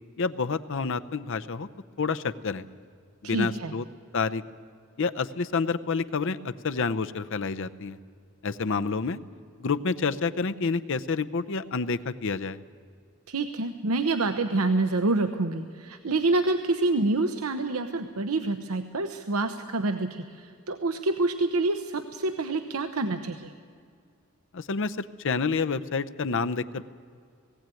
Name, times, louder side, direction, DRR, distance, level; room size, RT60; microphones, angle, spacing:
voice 1, 0.2-1.7 2.0-2.6 3.2-3.8 4.1-4.4 5.0-8.0 8.4-9.2 9.6-12.6 24.5-26.8, left 4 dB, 65° left, 11 dB, 0.7 m, -28 dB
voice 2, 3.2-3.7 13.3-23.5, right 2 dB, 90° right, 8 dB, 0.9 m, -27 dB
18.5 x 16.5 x 9.1 m, 2.2 s
head